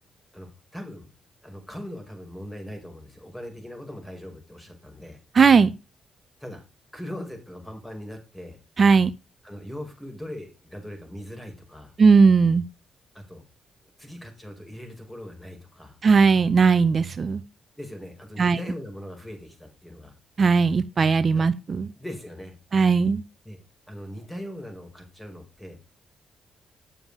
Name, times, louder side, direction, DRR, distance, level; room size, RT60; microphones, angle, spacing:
voice 1, 0.3-1.1 1.4-5.2 6.4-6.6 6.9-8.6 9.4-11.9 13.1-13.5 14.0-16.0 17.8-20.1 21.3-21.4 22.0-22.5 23.5-23.6 23.9-25.8, equal, 10° left, 4 dB, 5.4 m, -40 dB
voice 2, 5.3-5.7 8.8-9.1 12.0-12.6 16.0-17.4 18.4-18.6 20.4-21.9 22.7-23.2, right 5 dB, 50° right, 15 dB, 0.6 m, -18 dB
10.0 x 7.0 x 4.9 m, 0.29 s
supercardioid pair, 55°, 0 cm